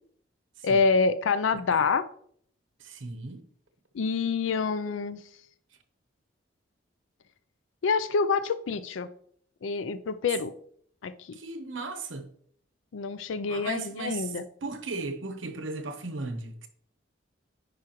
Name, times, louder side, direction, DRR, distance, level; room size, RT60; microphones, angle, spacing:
voice 1, 0.6-2.0 3.9-5.2 7.8-9.1 9.6-10.5 11.0-11.4 12.9-14.4, left 4 dB, 85° left, 0.4 m, -26 dB
voice 2, 1.5-1.9 2.8-3.4 11.3-12.3 13.5-14.3 14.6-16.7, right 3 dB, 90° right, 1.0 m, -36 dB
10.0 x 4.9 x 3.0 m
head